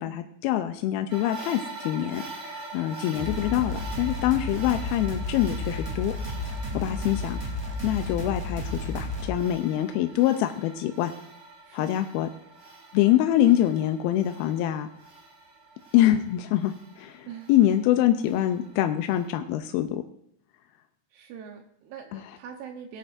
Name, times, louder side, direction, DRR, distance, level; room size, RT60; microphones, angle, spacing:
voice 1, 0.0-6.1 6.7-7.4 7.8-11.1 11.7-12.3 12.9-14.9 15.9-20.0 22.1-22.2, left 12 dB, 85° left, 7 dB, 2.3 m, -25 dB
sound 1, 1.1-19.3, right 3 dB, 60° right, 1.1 m, -44 dB
sound 2, 3.1-9.3, left 1 dB, 10° right, 1.3 m, -32 dB
voice 2, 6.7-7.1 11.6-12.0 17.3-17.5 21.1-23.0, right 7 dB, 80° right, 3 dB, 2.9 m, -43 dB
17.5 x 10.5 x 2.6 m, 0.70 s
omnidirectional pair, 4.7 m